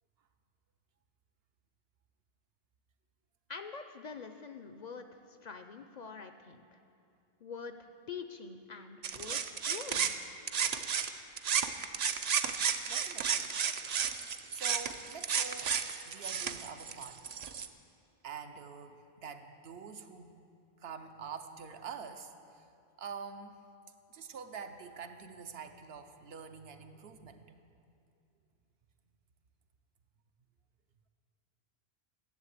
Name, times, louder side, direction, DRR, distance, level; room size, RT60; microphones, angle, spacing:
voice 1, 3.5-6.8 7.4-9.4 9.7-10.1, left 5 dB, 55° left, 8 dB, 0.5 m, -45 dB
sound 1, 9.0-11.1 11.4-17.7, right 7 dB, 55° right, 0.5 m, -33 dB
voice 2, 12.9-13.5 14.5-15.7 16.1-17.2 18.2-20.3 20.8-22.3 23.0-23.5 24.1-27.5, right 6 dB, 75° right, 7 dB, 0.9 m, -46 dB
11.0 x 7.6 x 8.1 m, 2.6 s
omnidirectional pair, 1.0 m